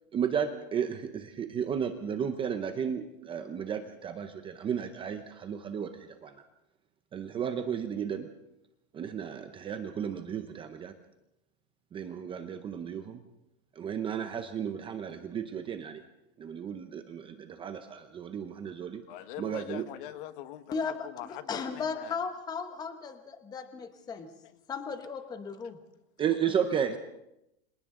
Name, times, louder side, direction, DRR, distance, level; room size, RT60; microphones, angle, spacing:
voice 1, 0.1-6.4 7.1-8.3 8.9-10.9 11.9-13.2 13.8-16.0 16.4-19.0 19.4-19.9 26.2-27.0, right 8 dB, 15° right, 8 dB, 0.7 m, -33 dB
voice 2, 19.1-22.1, left 13 dB, 40° left, 11 dB, 1.4 m, -42 dB
voice 3, 20.7-24.3 24.7-25.8, left 5 dB, 10° left, 8 dB, 1.0 m, -36 dB
30.0 x 26.0 x 3.8 m, 0.84 s
supercardioid pair, 170°, 38 cm